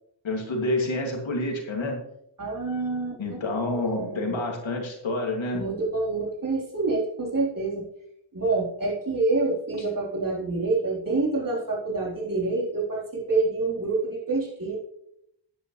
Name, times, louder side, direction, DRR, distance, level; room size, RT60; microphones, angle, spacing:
voice 1, 0.2-2.0 3.2-5.6 9.7-9.8, left 2 dB, 85° left, 0 dB, 2.6 m, -28 dB
voice 2, 2.4-4.4 5.5-7.8 8.3-14.8, right 3 dB, 45° right, -3 dB, 3.9 m, -27 dB
11.0 x 9.8 x 3.2 m, 0.75 s
wide cardioid pair, 65°, 45 cm